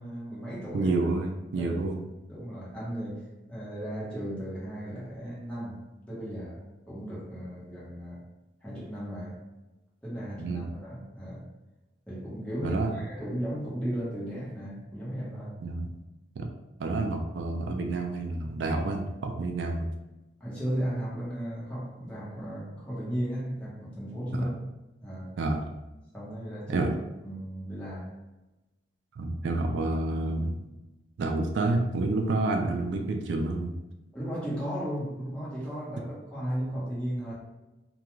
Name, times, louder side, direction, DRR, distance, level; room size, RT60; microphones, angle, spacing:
voice 1, 0.0-0.9 1.5-1.9 2.3-8.2 8.6-9.4 10.0-11.5 12.1-15.6 20.4-24.5 25.0-25.4 26.1-26.9 27.2-28.1 34.1-37.3, equal, 5° left, -8 dB, 0.9 m, -35 dB
voice 2, 0.7-2.0 10.4-10.7 12.6-12.9 15.6-15.9 16.4-16.5 16.8-19.9 24.4-24.5 25.4-25.7 26.7-26.9 29.2-30.6 31.2-33.7, right 2 dB, 75° right, 3 dB, 0.3 m, -29 dB
2.3 x 2.3 x 3.0 m, 1.0 s
head